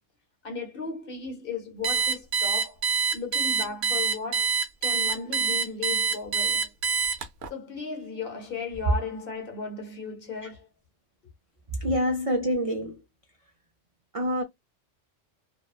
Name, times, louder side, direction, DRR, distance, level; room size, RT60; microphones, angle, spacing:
voice 1, 0.4-2.8 3.1-4.6 4.8-6.7 7.5-10.7, left 4 dB, 50° left, 1.0 m, -35 dB
Alarm, 1.8-7.5, right 5 dB, 65° right, 0.9 m, -25 dB
voice 2, 11.7-13.0 14.1-14.4, equal, 45° right, 0.4 m, -26 dB
2.7 x 2.2 x 2.3 m
omnidirectional pair, 1.3 m